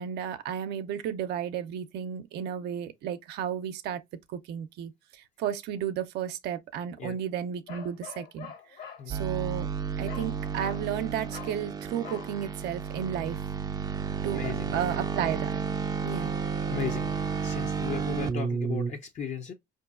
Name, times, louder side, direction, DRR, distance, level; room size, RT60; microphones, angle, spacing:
voice 1, 0.0-4.0 4.3-8.5 9.1-9.7 10.0-13.4 14.2-14.4 14.7-15.6 16.0-16.4, right 9 dB, 75° right, 0.5 m, -33 dB
Bark, 7.7-9.1 10.1-10.3 10.6-10.9 11.3-11.6 12.0-12.3, left 8 dB, 65° left, 1.3 m, -44 dB
sound 1, 9.1-18.9, right 6 dB, 25° right, 0.4 m, -32 dB
voice 2, 14.3-14.8 16.7-19.5, left 7 dB, 45° left, 0.5 m, -36 dB
4.4 x 2.5 x 2.4 m
cardioid pair, 110°, 17 cm